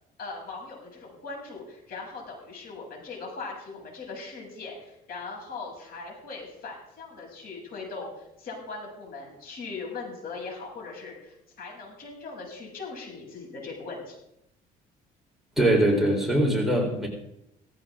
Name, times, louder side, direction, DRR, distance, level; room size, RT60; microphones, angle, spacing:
voice 1, 0.2-14.2, left 4 dB, 65° left, -1 dB, 7.8 m, -40 dB
voice 2, 15.6-17.1, right 1 dB, ahead, -1 dB, 4.0 m, -22 dB
18.0 x 16.0 x 3.8 m, 0.80 s
cardioid pair, 110°, 17 cm